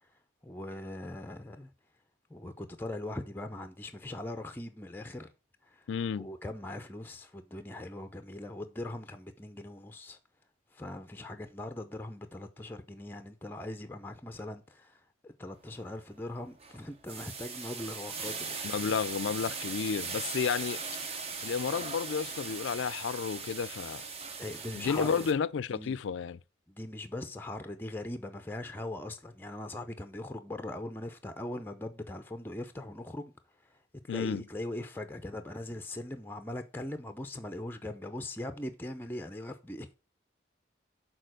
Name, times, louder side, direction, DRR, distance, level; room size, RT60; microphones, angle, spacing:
voice 1, 0.4-1.7 2.3-5.3 5.6-5.9 6.2-10.2 10.7-18.8 24.4-25.3 25.7-26.0 26.7-33.3 33.6-33.8 34.0-40.0, left 1 dB, 10° left, 0.6 m, -40 dB
voice 2, 5.9-6.3 18.6-20.8 21.4-24.0 24.7-26.4 34.1-34.4, left 6 dB, 75° left, 0.4 m, -31 dB
sound 1, 15.6-15.9 16.3-25.3, right 4 dB, 30° right, 0.8 m, -39 dB
6.7 x 4.2 x 6.2 m
head